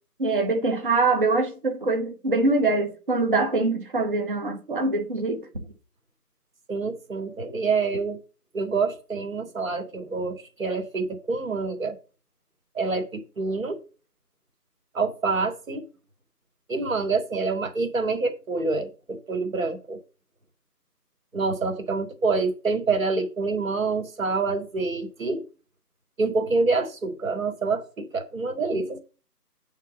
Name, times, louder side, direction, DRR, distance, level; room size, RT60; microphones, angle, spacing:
voice 1, 0.2-5.4, right 3 dB, 35° right, 1.2 m, -24 dB
voice 2, 6.7-8.2 8.5-12.0 12.7-13.8 14.9-15.8 16.7-20.0 21.3-25.4 26.2-29.0, right 4 dB, 55° right, 2.0 m, -27 dB
8.8 x 3.8 x 6.8 m
figure-of-eight pair, 170°, 48 cm